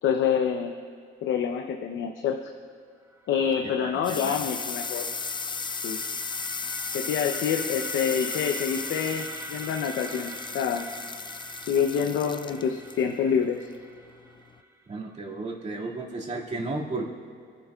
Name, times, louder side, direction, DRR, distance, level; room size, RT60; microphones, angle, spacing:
voice 1, 0.0-0.7 1.2-2.4 3.3-5.1 5.8-6.0 6.9-10.9 11.7-13.7, left 7 dB, 75° left, 4 dB, 0.7 m, -27 dB
Krucifix Productions atmosphere, 3.1-15.1, right 2 dB, 15° right, 1.0 m, -43 dB
sound 1, 3.3-14.6, left 5 dB, 25° left, 0.4 m, -36 dB
voice 2, 3.6-4.4 14.9-17.0, right 2 dB, 35° right, -3 dB, 2.2 m, -34 dB
23.5 x 11.0 x 2.4 m, 2.2 s
cardioid pair, 90°, 20 cm